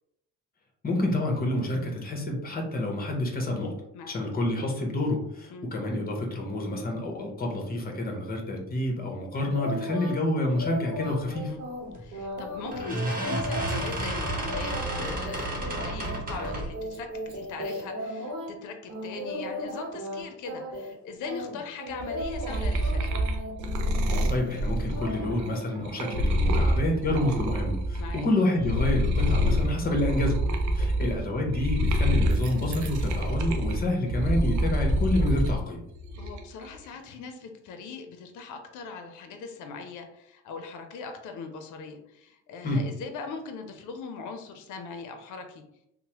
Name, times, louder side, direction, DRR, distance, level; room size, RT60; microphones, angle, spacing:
voice 1, 0.8-3.7 4.1-11.5 24.3-30.4 30.7-35.8 42.6-42.8, left 1 dB, 30° left, 1 dB, 0.9 m, -28 dB
sound 1, 9.5-10.2 10.5-18.5 18.9-20.2 20.5-21.0 21.2-24.6 24.9-25.6 26.0-26.2, equal, 90° right, 0.9 m, -36 dB
voice 2, 11.3-11.6 12.0-23.1 26.5-26.7 28.0-28.3 30.8-30.9 36.2-45.6, left 4 dB, 85° left, 5 dB, 0.5 m, -40 dB
sound 2, 12.0-12.2 12.7-16.8, right 1 dB, 30° right, 0.8 m, -32 dB
sound 3, 22.0-28.2 28.5-35.6 36.0-36.6, equal, 70° right, 0.5 m, -27 dB
3.0 x 2.0 x 2.9 m, 0.78 s
cardioid pair, 90°, 30 cm